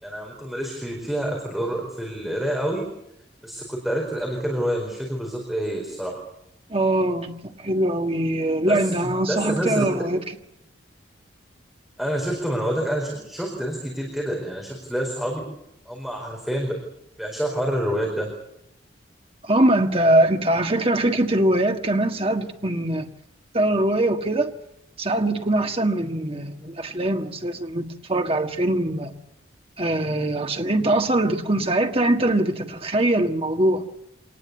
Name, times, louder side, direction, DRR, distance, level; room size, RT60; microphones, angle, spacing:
voice 1, 0.0-2.8 3.4-6.2 8.7-9.8 12.0-15.4 15.8-16.8 17.2-18.3, equal, ahead, 4.6 m, -27 dB
voice 2, 6.7-7.3 7.6-10.2 19.4-23.1 23.5-24.5 25.0-29.1 29.8-33.8, right 1 dB, 30° right, 1.7 m, -22 dB
25.5 x 19.5 x 8.2 m
head